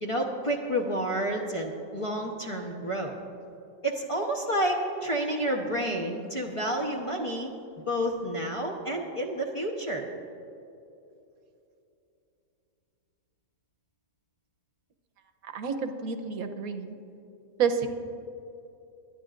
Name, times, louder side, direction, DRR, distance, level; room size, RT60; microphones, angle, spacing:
voice 1, 0.0-3.2 3.8-7.5 7.9-10.1, right 1 dB, 25° left, 0 dB, 0.9 m, -30 dB
voice 2, 15.4-17.0 17.6-17.9, right 6 dB, 80° right, 8 dB, 1.3 m, -29 dB
24.0 x 9.9 x 2.5 m, 2.8 s
omnidirectional pair, 1.5 m